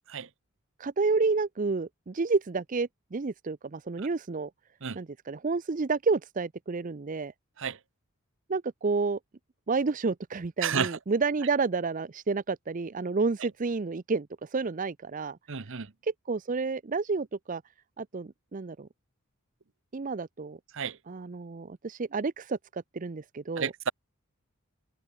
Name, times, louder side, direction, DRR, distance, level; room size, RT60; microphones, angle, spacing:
voice 1, 0.8-4.5 5.0-7.3 8.5-9.2 9.7-15.4 16.0-17.6 18.0-18.9 19.9-20.6 21.1-23.7, right 4 dB, 35° right, 0.5 m, -30 dB
voice 2, 15.5-15.9 20.7-20.9 23.6-23.9, right 6 dB, 60° right, 0.9 m, -30 dB
head